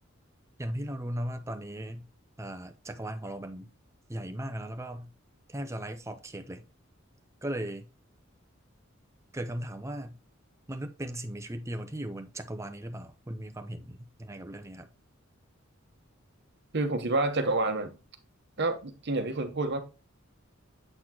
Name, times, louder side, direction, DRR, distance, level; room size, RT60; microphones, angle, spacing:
voice 1, 0.6-2.1 2.4-3.7 4.1-5.1 5.5-6.7 7.4-7.9 9.3-10.2 10.7-14.9, right 1 dB, 15° right, 0.6 m, -37 dB
voice 2, 16.7-17.9 18.6-19.8, right 2 dB, 55° right, 1.0 m, -28 dB
7.7 x 4.2 x 2.9 m
head